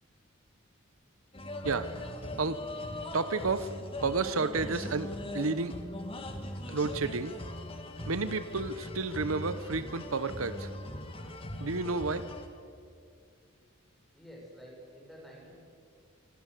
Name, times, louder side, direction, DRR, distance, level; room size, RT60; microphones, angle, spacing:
sound 1, 1.3-12.5, left 1 dB, 25° left, 2.3 m, -40 dB
voice 1, 1.6-2.0 2.4-2.6 3.1-3.7 4.0-5.8 6.7-7.4 8.1-10.7 11.6-12.3, right 3 dB, 85° right, 13 dB, 1.0 m, -31 dB
voice 2, 14.1-15.5, equal, ahead, -2 dB, 6.9 m, -50 dB
26.0 x 25.5 x 6.9 m, 2.4 s
head